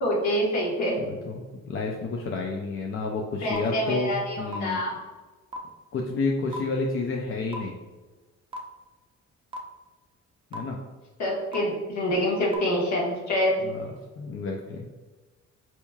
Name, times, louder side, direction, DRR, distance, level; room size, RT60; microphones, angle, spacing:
voice 1, 0.0-1.0 3.4-4.9 11.2-13.5, equal, 65° left, -3 dB, 1.2 m, -26 dB
voice 2, 1.1-1.4 1.7-4.1 4.4-4.8 5.9-7.7 10.5-10.8 13.6-13.9 14.2-14.9, left 3 dB, 45° left, 1 dB, 0.5 m, -30 dB
sound 1, 3.5-3.6 4.5-4.6 5.5-5.6 6.5-6.6 7.5-7.6 8.5-8.6 9.5-9.6 10.5-10.6 11.5-11.6 12.5-12.6, equal, 20° right, 0.5 m, -34 dB
4.5 x 2.8 x 2.3 m, 1.2 s
cardioid pair, 90°, 30 cm